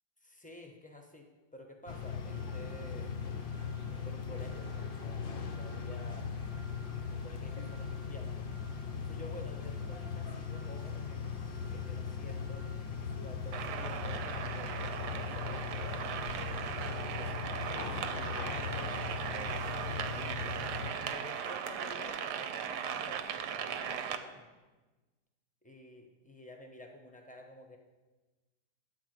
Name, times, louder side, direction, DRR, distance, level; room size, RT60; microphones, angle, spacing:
voice 1, 0.2-3.3 3.9-6.3 7.0-8.4 8.9-11.3 11.7-12.7 13.0-16.6 17.1-20.2 20.9-24.5 25.6-27.8, left 1 dB, 10° left, 2 dB, 0.4 m, -51 dB
sound 1, 1.9-20.9, left 6 dB, 65° left, 0.5 m, -39 dB
sound 2, 13.5-24.2, right 8 dB, 70° right, 1.1 m, -38 dB
10.0 x 4.7 x 7.8 m, 1.2 s
omnidirectional pair, 1.9 m